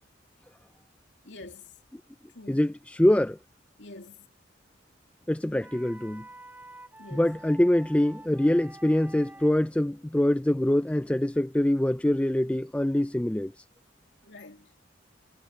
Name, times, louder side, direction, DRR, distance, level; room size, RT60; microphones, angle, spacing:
voice 1, 1.2-1.7 2.3-2.7 3.8-4.3 7.0-7.3 14.2-14.7, left 2 dB, 70° left, 2.5 m, -46 dB
voice 2, 2.5-3.4 5.3-6.2 7.1-13.5, left 1 dB, 5° left, 0.3 m, -24 dB
sound 1, 5.6-9.6, right 2 dB, 10° right, 4.8 m, -48 dB
head